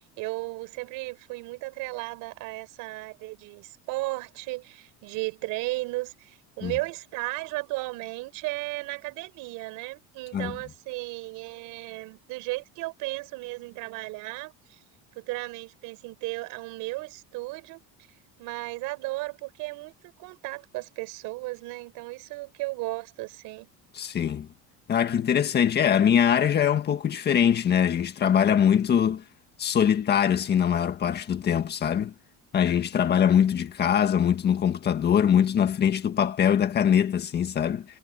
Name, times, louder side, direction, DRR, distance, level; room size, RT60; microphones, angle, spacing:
voice 1, 0.0-14.8 15.1-17.8 18.4-23.7, right 22 dB, 70° right, 4.9 m, -35 dB
voice 2, 23.9-24.5 24.9-29.2 29.6-32.1 32.5-37.9, left 8 dB, 30° left, 1.7 m, -22 dB
cardioid pair, 170°, 34 cm